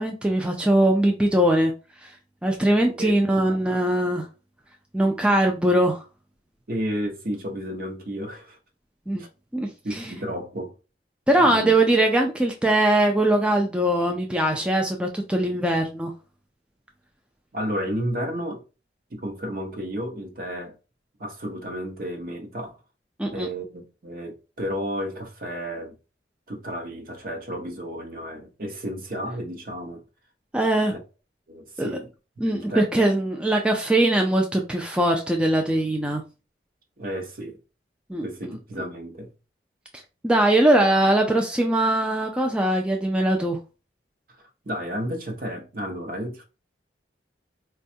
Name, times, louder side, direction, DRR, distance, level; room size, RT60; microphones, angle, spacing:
voice 1, 0.0-1.7 2.0-2.1 2.4-4.3 4.9-6.0 9.1-9.2 9.5-10.1 11.3-16.1 23.2-23.5 30.5-30.9 31.8-32.0 32.4-36.2 38.1-38.2 40.2-43.6, right 1 dB, 5° right, 0.3 m, -21 dB
voice 2, 3.0-3.6 6.7-8.6 9.2-9.3 9.8-10.7 11.4-11.7 17.5-18.6 19.1-20.7 21.2-22.8 23.2-25.9 26.5-30.0 30.9-31.0 31.5-32.1 32.4-32.8 37.0-37.6 38.2-39.3 44.7-46.4, equal, 50° right, 0.8 m, -32 dB
4.2 x 2.3 x 2.6 m
head